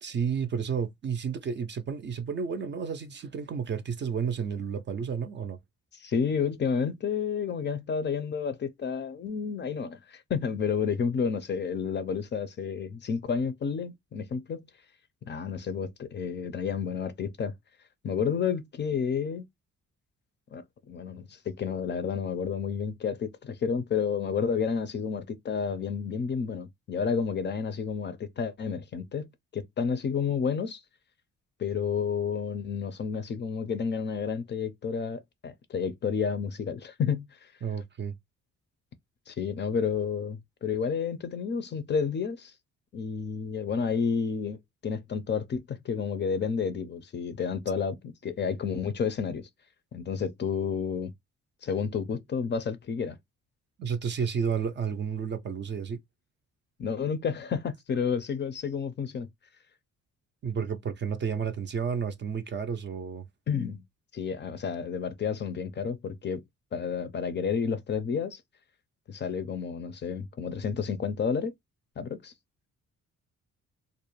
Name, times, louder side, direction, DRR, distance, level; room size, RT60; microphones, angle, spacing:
voice 1, 0.0-5.6 37.6-38.2 53.8-56.0 60.4-63.3, right 6 dB, 40° right, 0.4 m, -31 dB
voice 2, 6.0-14.6 15.2-17.5 18.0-19.5 20.5-30.8 31.6-37.3 39.3-42.5 42.9-44.6 44.8-49.5 49.9-51.1 51.6-53.2 56.8-59.3 63.5-63.8 64.1-66.4 66.7-68.4 69.1-71.5 72.0-72.3, left 6 dB, 35° left, 0.4 m, -30 dB
2.4 x 2.1 x 2.9 m
cardioid pair, 90°, 30 cm